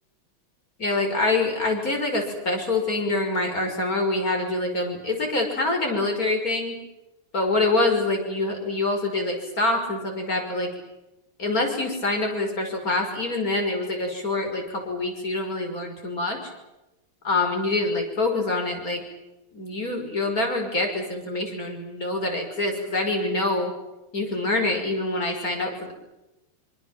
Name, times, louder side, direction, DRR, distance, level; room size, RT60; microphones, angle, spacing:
voice 1, 0.8-6.8 7.3-10.7 11.4-16.4 17.2-19.0 19.5-23.7 24.1-25.9, left 2 dB, 40° left, 3 dB, 6.3 m, -25 dB
26.5 x 26.0 x 7.7 m, 0.98 s
omnidirectional pair, 2.4 m